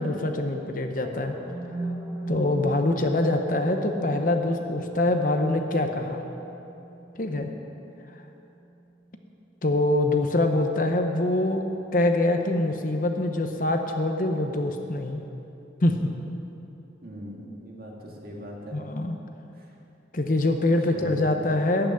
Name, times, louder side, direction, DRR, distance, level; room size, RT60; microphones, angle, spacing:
voice 1, 0.0-1.3 2.3-6.2 7.2-7.5 9.6-11.6 11.9-15.2 15.8-16.1 18.7-19.2 20.1-21.9, left 2 dB, 45° left, 5 dB, 0.9 m, -24 dB
sound 1, 0.9-8.9, right 2 dB, 20° right, 1.5 m, -38 dB
voice 2, 17.0-18.8 19.6-19.7 20.9-21.2, equal, 50° right, -2 dB, 2.1 m, -40 dB
14.5 x 6.0 x 9.8 m, 3.0 s
head